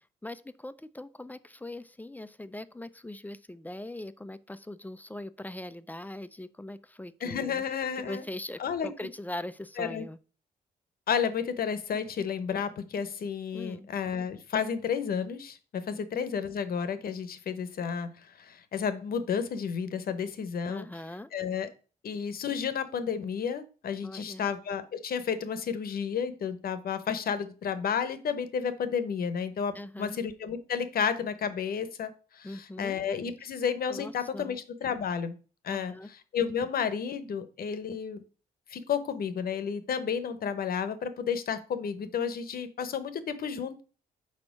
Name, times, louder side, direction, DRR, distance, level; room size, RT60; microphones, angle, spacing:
voice 1, 0.2-7.6 8.0-10.2 13.5-13.9 20.7-21.3 24.0-24.5 29.7-30.2 32.4-33.0 33.9-34.5 35.7-36.1, left 1 dB, 10° left, 13 dB, 0.4 m, -41 dB
voice 2, 7.2-8.3 8.6-9.1 9.7-10.0 11.1-21.7 22.0-35.4 35.6-38.2 38.7-43.8, left 7 dB, 60° left, 11 dB, 0.8 m, -32 dB
4.4 x 4.3 x 5.8 m, 0.38 s
cardioid pair, 75°, 17 cm